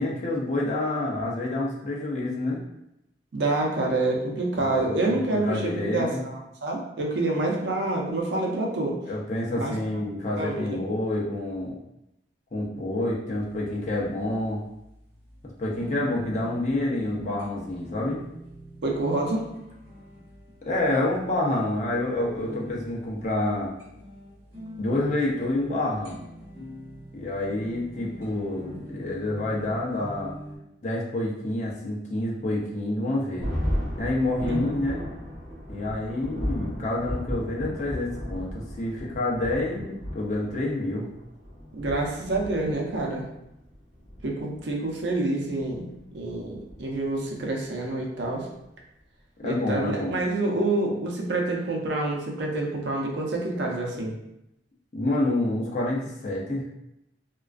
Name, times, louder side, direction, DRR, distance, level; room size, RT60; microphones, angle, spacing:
voice 1, 0.0-2.6 4.5-6.2 9.1-11.8 12.5-14.6 15.6-18.2 20.7-23.7 24.8-26.2 27.1-30.3 30.8-33.5 34.0-35.0 35.7-41.1 49.4-50.2 54.9-56.6, left 1 dB, 40° left, -4 dB, 0.5 m, -28 dB
voice 2, 3.3-9.0 9.6-10.0 10.4-10.8 18.8-19.4 34.4-34.8 41.8-43.2 44.2-45.9 46.1-48.5 49.4-54.1, right 2 dB, 75° right, -1 dB, 0.5 m, -27 dB
sound 1, 13.3-30.6, equal, 25° right, 1.1 m, -44 dB
Thunder, 33.4-47.4, equal, 15° left, 1.0 m, -35 dB
2.3 x 2.2 x 2.3 m, 0.85 s
head